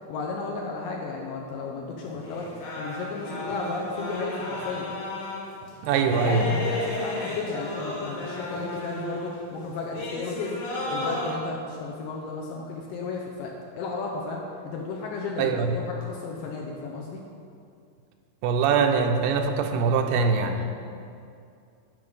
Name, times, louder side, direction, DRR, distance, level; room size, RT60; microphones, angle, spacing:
voice 1, 0.1-2.5 2.8-4.9 5.9-10.6 10.9-17.2, left 4 dB, 75° left, -1 dB, 2.1 m, -34 dB
sound 1, 2.1-9.5 9.9-11.4, left 1 dB, 50° left, 2.2 m, -33 dB
voice 2, 5.8-6.5 15.4-15.7 18.4-20.6, right 5 dB, 85° right, 5 dB, 2.7 m, -23 dB
11.0 x 5.4 x 5.3 m, 2.4 s
omnidirectional pair, 4.6 m